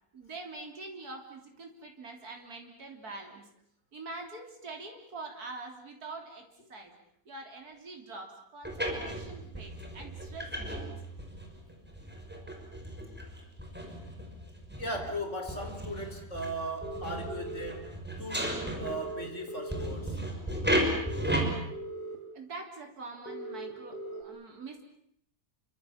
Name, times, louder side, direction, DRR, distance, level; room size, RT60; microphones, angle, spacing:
voice 1, 0.1-3.5 3.9-7.0 7.3-10.9 22.3-24.8, right 3 dB, 60° right, 2 dB, 4.0 m, -44 dB
sound 1, 8.6-19.3 19.7-21.5, right 1 dB, 5° right, 5.7 m, -35 dB
voice 2, 14.8-17.9 18.2-18.5 18.8-20.2, right 1 dB, 45° left, 5 dB, 4.9 m, -37 dB
sound 2, 16.8-17.7 18.8-19.9 21.0-22.2 23.3-24.2, right 1 dB, 65° left, 3.9 m, -40 dB
29.0 x 25.0 x 7.3 m, 0.71 s
omnidirectional pair, 1.8 m